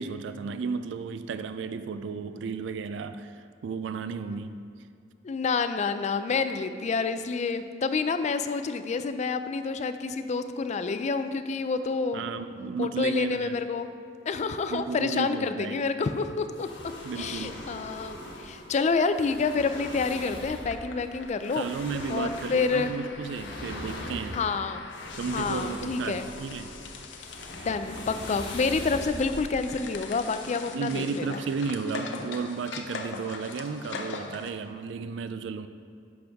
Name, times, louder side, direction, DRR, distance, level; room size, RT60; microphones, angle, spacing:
voice 1, 0.0-4.6 12.1-13.6 14.7-15.9 17.0-17.6 21.5-24.4 25.2-26.7 30.7-35.7, right 5 dB, 75° right, 11 dB, 0.3 m, -33 dB
voice 2, 5.2-12.2 12.8-13.9 14.3-16.7 17.2-21.7 22.1-22.9 24.3-24.9 25.3-26.3 27.5-31.4, left 4 dB, 40° left, 10 dB, 0.4 m, -28 dB
sound 1, 16.5-30.4, left 1 dB, 70° left, 1.4 m, -41 dB
The Wind Chases The Goat, 19.2-34.5, left 4 dB, 85° left, 0.7 m, -42 dB
10.5 x 6.0 x 3.5 m, 2.3 s
head